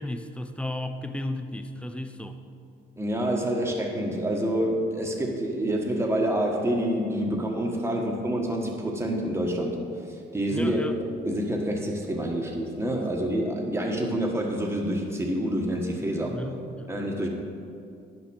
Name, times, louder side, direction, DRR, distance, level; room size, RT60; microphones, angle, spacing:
voice 1, 0.0-2.4 10.5-11.0 16.3-16.9, left 1 dB, 5° left, 8 dB, 0.6 m, -34 dB
voice 2, 3.0-9.8 10.3-10.8 11.2-16.4 16.9-17.3, right 1 dB, 10° right, -1 dB, 1.4 m, -27 dB
9.8 x 6.1 x 6.4 m, 2.4 s
cardioid pair, 90°, 20 cm